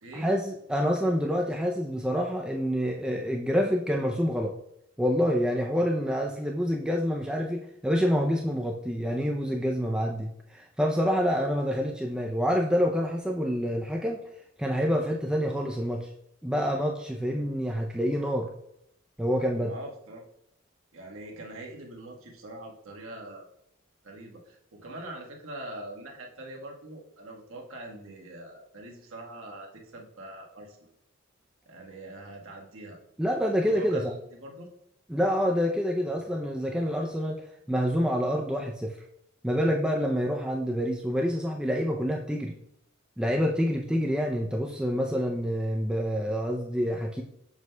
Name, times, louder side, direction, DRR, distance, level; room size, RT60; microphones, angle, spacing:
voice 1, 0.1-4.5 5.0-14.2 14.6-16.1 16.4-18.5 19.2-19.7 33.2-34.0 35.1-37.4 37.7-39.0 39.4-42.5 43.2-47.2, equal, 5° right, 1 dB, 0.4 m, -27 dB
voice 2, 19.6-20.2 20.9-23.5 24.0-30.9 31.6-33.0 33.6-34.7, right 1 dB, 85° right, 0 dB, 1.3 m, -43 dB
7.2 x 6.1 x 2.2 m, 0.78 s
head